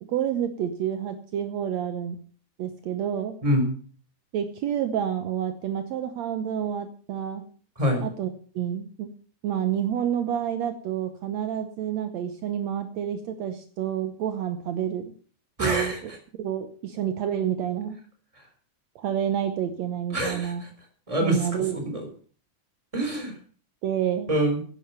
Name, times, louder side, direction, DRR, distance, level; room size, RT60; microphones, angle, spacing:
voice 1, 0.1-2.2 2.6-3.4 4.3-7.4 8.0-8.3 8.6-9.1 9.4-15.1 15.6-18.0 19.0-20.6 21.2-21.8 23.8-24.3, right 9 dB, 70° right, 8 dB, 2.1 m, -29 dB
voice 2, 3.4-3.7 7.8-8.1 15.6-16.0 20.1-20.7 21.1-22.0 22.9-23.3 24.3-24.6, equal, 10° right, 3 dB, 3.8 m, -25 dB
11.0 x 10.0 x 6.8 m, 0.43 s
omnidirectional pair, 3.3 m